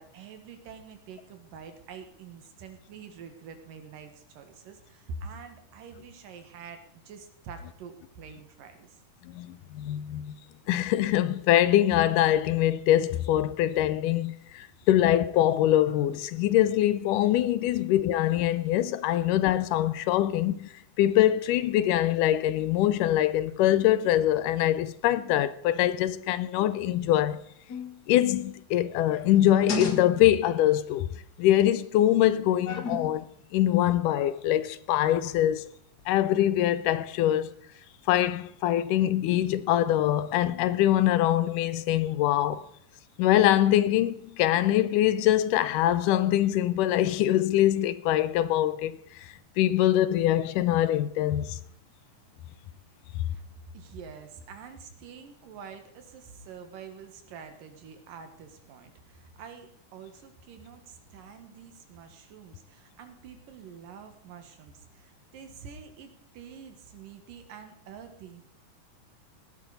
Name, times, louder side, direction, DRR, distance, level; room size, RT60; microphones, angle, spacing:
voice 1, 0.0-9.0 53.2-53.5 53.7-68.4, right 5 dB, 80° right, 3.2 m, -46 dB
voice 2, 9.2-10.4 10.7-20.7 21.0-27.4 28.1-31.1 31.4-35.7 36.1-37.5 38.1-42.7 43.2-51.6 53.2-53.3, left 13 dB, 80° left, 2.2 m, -24 dB
sound 1, 27.7-28.0 29.3-30.4 32.7-33.3 35.1-35.5 36.0-36.1, left 3 dB, 65° left, 0.9 m, -34 dB
17.0 x 12.0 x 4.1 m
omnidirectional pair, 3.8 m